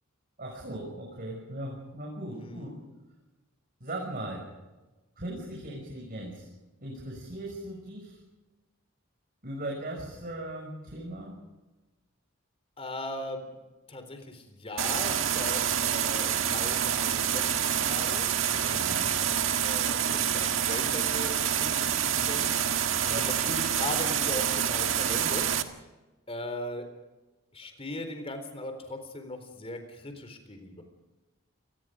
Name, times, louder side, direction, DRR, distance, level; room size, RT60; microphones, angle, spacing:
voice 1, 0.4-2.7 3.8-4.4 5.2-6.5 6.8-8.2 9.4-11.3 18.7-19.1 23.0-23.3, right 1 dB, 45° right, -1 dB, 6.2 m, -38 dB
voice 2, 2.3-2.7 12.8-13.5 13.9-22.5 22.8-22.9 23.2-25.6 26.3-26.9 27.5-30.8, left 1 dB, 30° left, 7 dB, 3.9 m, -39 dB
sound 1, 14.8-25.6, right 9 dB, 80° right, 1.7 m, -27 dB
28.0 x 20.5 x 5.1 m, 1.1 s
head